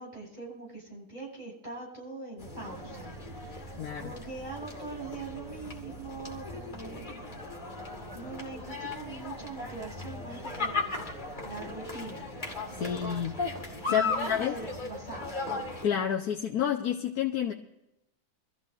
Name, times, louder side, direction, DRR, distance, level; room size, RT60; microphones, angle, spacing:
voice 1, 0.0-7.2 8.1-10.8 11.4-12.3 12.7-13.1 13.9-15.3, right 3 dB, 30° right, -4 dB, 7.2 m, -42 dB
sound 1, 2.4-15.8, left 3 dB, 30° left, 2.3 m, -37 dB
voice 2, 3.8-4.1 12.8-13.3 13.7-14.5 15.8-17.5, left 9 dB, 85° left, 0 dB, 1.4 m, -29 dB
24.5 x 14.5 x 2.6 m, 0.84 s
omnidirectional pair, 1.6 m